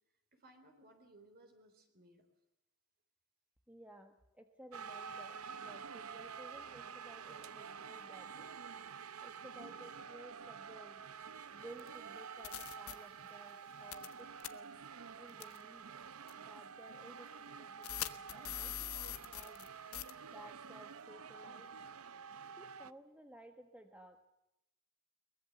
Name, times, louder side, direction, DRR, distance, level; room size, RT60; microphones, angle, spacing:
voice 1, 0.3-2.3 9.6-9.9, right 1 dB, 45° right, 5 dB, 3.7 m, -62 dB
voice 2, 3.7-8.5 9.2-11.0 11.5-14.8 15.2-15.9 16.4-18.7 19.3-19.7 20.2-21.8 22.6-24.2, right 1 dB, 5° right, 5 dB, 1.4 m, -56 dB
sound 1, 4.7-22.9, right 6 dB, 80° right, 0.8 m, -49 dB
sound 2, 11.8-11.9 12.4-12.9 13.9-14.1 14.4-14.5 15.4-15.6 16.3-16.4 17.8-19.7 19.9-20.1, left 12 dB, 80° left, 1.2 m, -42 dB
22.5 x 20.5 x 8.1 m, 0.87 s
head